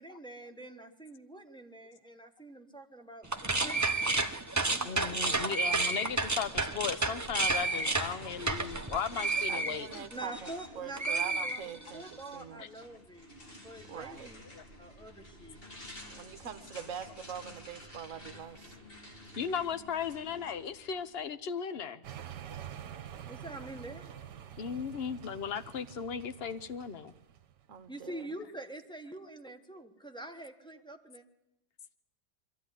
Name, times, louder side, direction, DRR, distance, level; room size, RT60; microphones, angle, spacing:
voice 1, 0.0-4.3 4.9-5.4 6.7-6.8 10.1-11.6 11.9-14.4 14.8-15.6 23.3-24.1 27.9-31.2, right 1 dB, 5° left, 3 dB, 1.1 m, -46 dB
sound 1, 3.2-10.7 11.0-12.1, right 3 dB, 15° right, 0.6 m, -31 dB
voice 2, 4.8-9.9 12.6-12.7 14.5-14.6 19.4-22.0 24.6-27.1, left 7 dB, 45° left, 13 dB, 0.8 m, -36 dB
sound 2, 7.8-21.3, left 1 dB, 30° left, 2.8 m, -51 dB
voice 3, 9.5-12.8 13.9-14.3 16.1-18.8 27.7-28.3, right 8 dB, 50° right, 9 dB, 1.3 m, -44 dB
sound 3, 22.0-27.7, right 10 dB, 65° right, 1.5 m, -47 dB
23.5 x 14.0 x 9.9 m, 0.88 s
omnidirectional pair, 2.0 m